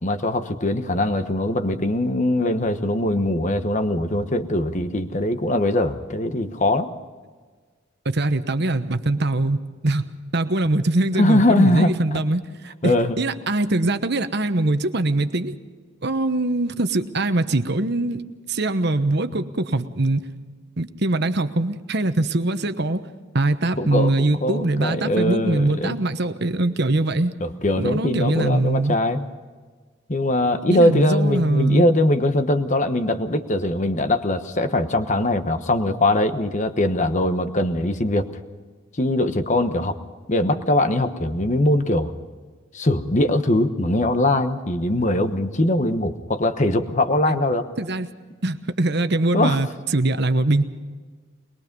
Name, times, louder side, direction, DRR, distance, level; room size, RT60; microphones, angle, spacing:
voice 1, 0.0-6.9 11.2-12.2 12.8-13.2 23.8-24.1 24.4-26.0 27.4-29.3 30.1-38.3 39.0-39.9 40.3-42.1 42.7-47.7 49.3-49.6, left 1 dB, 35° left, 9 dB, 1.1 m, -21 dB
voice 2, 8.0-10.1 10.3-15.5 16.0-20.2 20.8-23.1 23.3-27.3 27.8-29.0 30.7-31.9 47.3-47.4 47.8-48.1 48.4-50.6, right 2 dB, 50° right, 10 dB, 1.1 m, -22 dB
22.5 x 21.5 x 5.4 m, 1.5 s
head